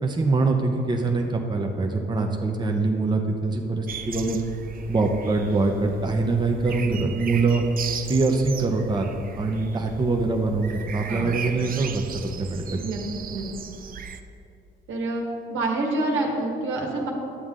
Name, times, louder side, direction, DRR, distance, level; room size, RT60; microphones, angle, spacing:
voice 1, 0.0-4.4 4.9-7.6 8.1-9.1 9.4-12.8, right 3 dB, 20° right, 2 dB, 0.9 m, -24 dB
sound 1, 3.9-14.2, right 7 dB, 45° right, 0.6 m, -37 dB
voice 2, 6.6-7.1 11.1-11.3 12.7-13.0 13.3-13.4 14.9-15.2 15.5-17.1, right 2 dB, 85° right, -1 dB, 1.6 m, -28 dB
11.5 x 7.8 x 3.8 m, 2.7 s
cardioid pair, 90°, 20 cm